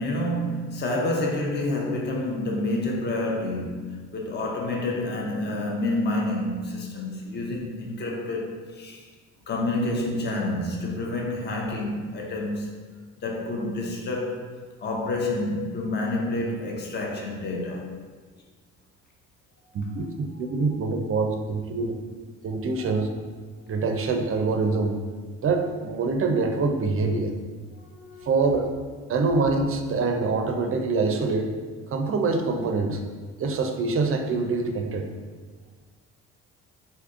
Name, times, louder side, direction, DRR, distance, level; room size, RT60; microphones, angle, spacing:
voice 1, 0.0-9.1 9.5-12.7 13.2-14.5 14.8-17.9 27.8-28.3, left 2 dB, 35° left, -1 dB, 0.6 m, -28 dB
voice 2, 19.7-22.0 22.4-23.1 23.7-25.0 25.4-27.3 28.2-28.7 29.1-31.6 31.9-33.0 33.4-35.1, right 3 dB, 45° right, 5 dB, 0.5 m, -25 dB
3.4 x 2.7 x 2.4 m, 1.4 s
supercardioid pair, 60°, 31 cm